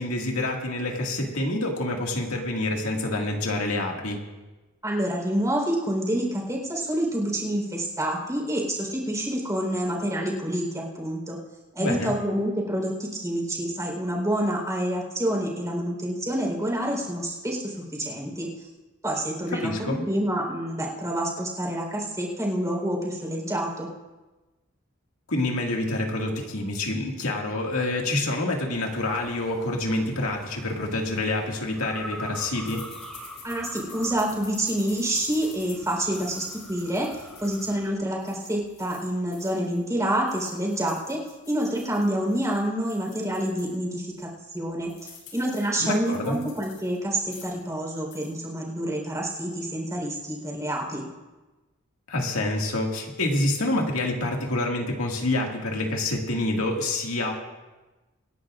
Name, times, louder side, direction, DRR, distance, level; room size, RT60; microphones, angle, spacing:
voice 1, 0.0-4.2 11.8-12.1 19.5-20.0 25.3-32.8 45.8-46.4 52.1-57.4, left 2 dB, 90° left, 0 dB, 2.1 m, -27 dB
voice 2, 4.8-11.4 11.7-18.5 19.0-23.9 33.4-37.1 37.4-41.2 41.5-44.9 45.3-51.0, right 1 dB, 15° right, -1 dB, 4.2 m, -28 dB
sound 1, 28.7-37.9, equal, ahead, 2.8 m, -44 dB
sound 2, 32.7-39.8 40.1-43.8 44.2-44.3 44.5-47.0 47.2-47.7 48.0-48.3, left 6 dB, 60° left, 5.1 m, -49 dB
26.0 x 11.0 x 2.5 m, 1.1 s
head